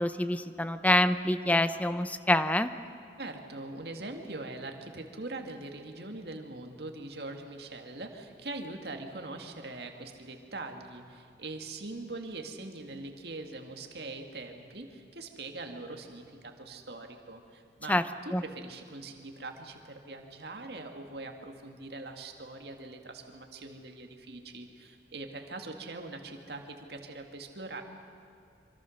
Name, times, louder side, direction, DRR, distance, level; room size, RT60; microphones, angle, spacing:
voice 1, 0.0-2.7 17.9-18.0 18.3-18.4, left 1 dB, 10° left, 11 dB, 0.6 m, -26 dB
voice 2, 3.2-27.8, right 2 dB, 60° right, 4 dB, 2.0 m, -42 dB
25.0 x 24.5 x 6.5 m, 2.5 s
head